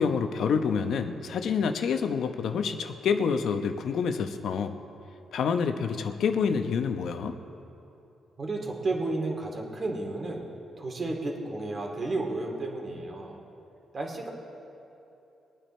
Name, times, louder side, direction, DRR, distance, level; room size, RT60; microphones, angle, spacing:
voice 1, 0.0-4.8 5.3-7.3, left 6 dB, 70° left, 7 dB, 0.8 m, -27 dB
voice 2, 8.4-10.5 10.8-13.4 13.9-14.3, right 2 dB, 35° right, 1 dB, 2.3 m, -32 dB
22.5 x 9.1 x 4.3 m, 2.9 s
cardioid pair, 95°, 0 cm